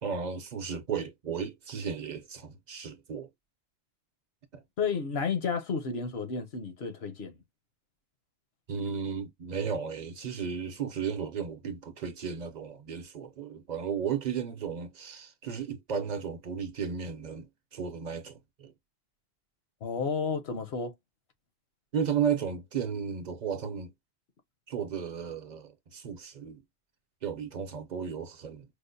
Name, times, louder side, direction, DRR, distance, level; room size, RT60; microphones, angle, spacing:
voice 1, 0.0-3.3 4.5-4.6 8.7-18.7 21.9-23.9 24.7-26.6 27.2-28.6, right 7 dB, 50° right, 0.6 m, -34 dB
voice 2, 4.8-7.4 19.8-20.9, left 5 dB, 80° left, 1.1 m, -31 dB
4.8 x 2.1 x 2.5 m
omnidirectional pair, 1.0 m